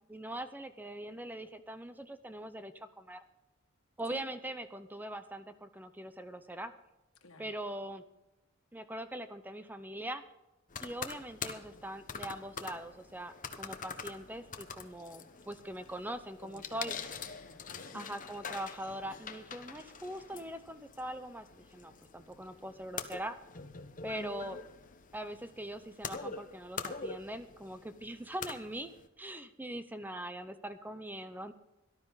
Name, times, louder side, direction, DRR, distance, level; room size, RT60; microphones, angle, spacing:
voice 1, 0.1-3.2 4.0-6.7 7.4-8.0 8.7-10.2 10.8-16.9 17.9-23.4 24.0-24.6 25.1-28.9 29.2-31.5, right 1 dB, 10° right, 10 dB, 0.7 m, -42 dB
voice 2, 7.2-7.6 16.4-18.2 24.2-24.6, left 1 dB, 75° left, 6 dB, 1.7 m, -52 dB
sound 1, 10.7-29.1, left 5 dB, 40° left, 1.1 m, -45 dB
18.0 x 12.0 x 4.0 m, 0.95 s
head